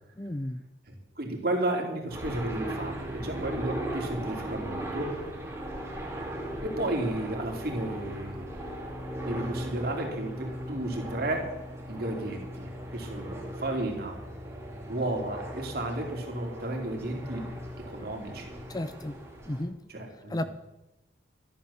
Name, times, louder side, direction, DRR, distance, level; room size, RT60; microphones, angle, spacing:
voice 1, 0.2-0.6 18.7-19.2 19.5-19.8 20.3-20.4, left 1 dB, 20° left, 11 dB, 0.5 m, -33 dB
voice 2, 0.9-5.1 6.6-8.5 9.3-11.5 11.9-14.2 14.9-17.5 17.9-18.5 19.9-20.5, right 1 dB, 50° right, 1 dB, 3.1 m, -33 dB
sound 1, 2.1-19.6, right 1 dB, 15° right, 2.6 m, -38 dB
14.0 x 10.5 x 7.1 m, 0.95 s
head